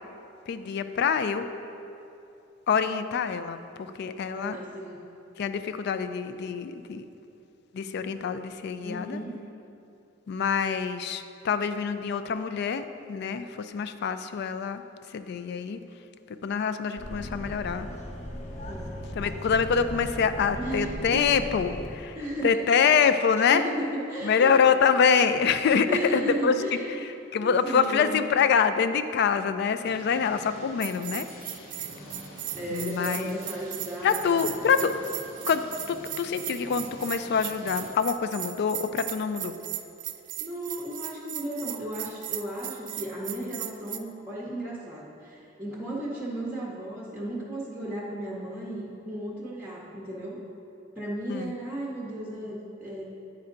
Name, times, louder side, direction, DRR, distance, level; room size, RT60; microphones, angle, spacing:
voice 1, 0.5-1.5 2.7-4.6 5.4-7.0 7.7-9.2 10.3-14.8 15.1-15.8 16.4-17.9 19.1-22.2 22.4-23.7 24.2-26.6 27.0-31.6 32.7-33.4 34.0-35.0 35.5-39.6 51.3-51.5, left 6 dB, 55° left, 11 dB, 0.3 m, -25 dB
voice 2, 4.3-5.0 8.8-9.4 18.7-18.9 20.6-21.3 22.1-22.9 23.4-24.6 25.9-27.1 27.4-28.2 32.5-34.8 40.4-50.4 51.0-53.0, right 1 dB, 10° right, -5 dB, 0.7 m, -35 dB
sound 1, 17.0-21.9, equal, 35° left, 0.7 m, -37 dB
sound 2, 29.8-37.9, left 1 dB, 80° left, 1.3 m, -47 dB
Bell, 30.8-44.0, right 13 dB, 40° right, 0.3 m, -37 dB
9.8 x 4.3 x 3.8 m, 2.8 s
head